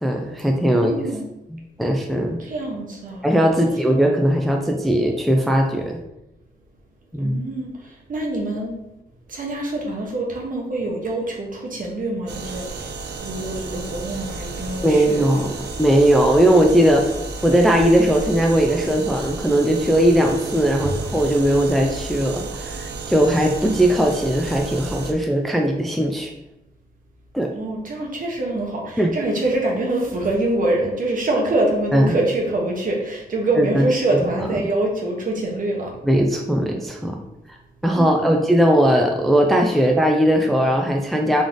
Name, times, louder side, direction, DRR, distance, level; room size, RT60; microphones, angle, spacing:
voice 1, 0.0-0.9 1.5-2.4 3.2-6.0 7.1-7.4 14.8-15.5 15.8-17.0 17.4-26.3 27.3-27.5 29.0-29.1 31.9-32.2 33.6-33.9 34.1-34.3 36.0-37.2 37.8-41.4, equal, ahead, 2 dB, 0.4 m, -18 dB
voice 2, 0.7-1.2 2.4-3.7 7.2-8.8 9.3-12.9 13.2-15.3 20.8-21.0 27.5-36.0 37.9-38.3, right 2 dB, 55° right, 0 dB, 1.2 m, -25 dB
sound 1, 12.3-25.1, right 3 dB, 80° right, 0.6 m, -32 dB
4.0 x 3.2 x 3.8 m, 0.88 s
cardioid pair, 100°, 17 cm